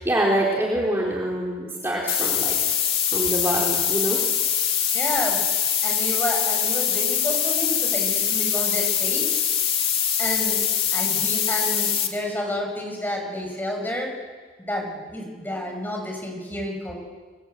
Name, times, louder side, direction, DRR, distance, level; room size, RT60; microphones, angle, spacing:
voice 1, 0.0-2.5 3.1-4.2, right 1 dB, 15° right, -4 dB, 4.1 m, -25 dB
sound 1, 2.1-12.1, left 8 dB, 35° left, 2.6 m, -23 dB
voice 2, 4.9-5.4 5.8-9.4 10.2-10.6 10.9-14.1 14.6-17.0, left 1 dB, 10° left, 2 dB, 6.7 m, -30 dB
29.5 x 24.0 x 8.4 m, 1.5 s
head